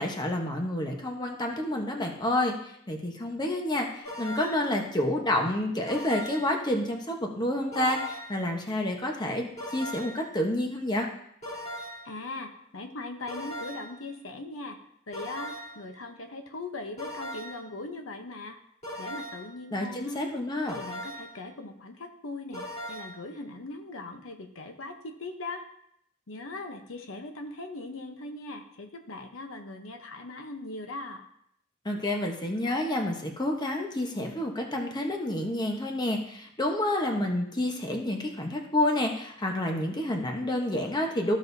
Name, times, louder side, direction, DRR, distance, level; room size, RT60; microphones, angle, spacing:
voice 1, 0.0-11.1 19.7-20.8 31.8-41.4, left 1 dB, 20° left, 1 dB, 1.1 m, -29 dB
sound 1, 4.0-4.7 5.9-6.6 7.7-8.5 9.6-10.3 11.4-12.2 13.3-14.0 15.1-15.9 17.0-17.7 18.8-19.6 20.7-21.4 22.5-23.3, equal, 40° left, 3.8 m, -39 dB
voice 2, 12.0-14.8 15.1-18.6 19.0-20.2 20.8-25.6 26.3-31.3, left 2 dB, 70° left, 5 dB, 0.9 m, -40 dB
14.5 x 6.3 x 2.7 m, 0.73 s
head